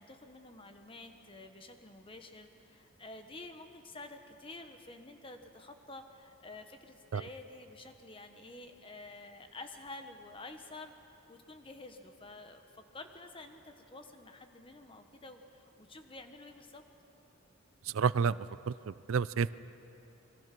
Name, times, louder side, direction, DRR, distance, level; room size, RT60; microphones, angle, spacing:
voice 1, 0.0-16.8, left 2 dB, 25° left, 6 dB, 1.3 m, -50 dB
voice 2, 17.8-19.5, right 6 dB, 75° right, 18 dB, 0.4 m, -30 dB
27.5 x 22.5 x 6.1 m, 2.8 s
head